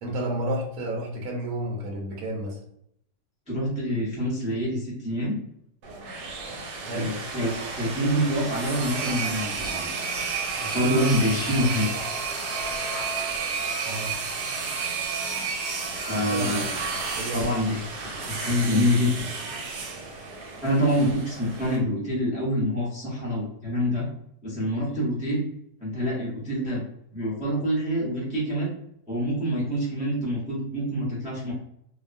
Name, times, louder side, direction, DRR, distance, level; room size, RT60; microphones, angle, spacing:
voice 1, 0.0-2.6 6.8-7.1 13.8-14.1 16.1-16.6 17.2-17.5, equal, 70° right, -1 dB, 1.0 m, -31 dB
voice 2, 3.5-5.3 6.9-10.0 10.6-11.9 16.1-16.7 17.3-19.3 20.6-24.1 24.4-25.5 25.8-26.8 27.1-28.7 29.1-31.5, equal, 10° right, -7 dB, 0.5 m, -26 dB
sound 1, 5.8-21.8, right 4 dB, 90° right, 1.3 m, -31 dB
2.7 x 2.3 x 2.5 m, 0.72 s
omnidirectional pair, 1.8 m